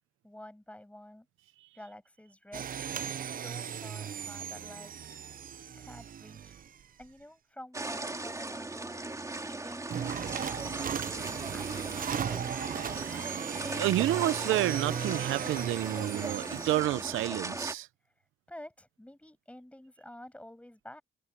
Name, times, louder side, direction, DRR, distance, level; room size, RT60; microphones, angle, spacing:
voice 1, 0.2-1.3 1.7-2.6 2.9-4.9 5.7-6.5 7.0-8.9 9.3-10.4 10.8-12.5 18.5-21.0, left 1 dB, 5° left, 7.8 m, -50 dB
sound 1, 2.5-7.0 9.9-17.2, right 8 dB, 45° right, 0.7 m, -37 dB
sound 2, 7.7-17.7, right 2 dB, 15° right, 2.9 m, -38 dB
voice 2, 13.7-17.9, right 15 dB, 85° right, 0.8 m, -29 dB
open air
cardioid pair, 90°, 20 cm